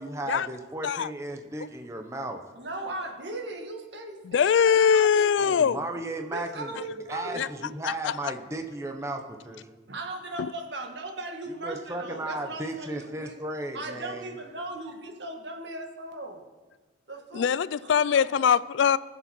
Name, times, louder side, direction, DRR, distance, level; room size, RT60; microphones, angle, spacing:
voice 1, 0.0-2.4 5.4-6.7 7.1-9.8 11.5-14.4, right 1 dB, 15° right, 1.0 m, -35 dB
voice 2, 2.5-5.6 6.3-7.5 9.9-13.3 13.7-16.4 17.1-17.5 17.8-18.5, right 2 dB, 70° right, 1.8 m, -38 dB
voice 3, 4.2-5.8 7.4-7.5 7.8-8.3 10.4-10.5 17.3-19.0, left 7 dB, 85° left, 0.3 m, -22 dB
20.0 x 7.3 x 4.5 m
head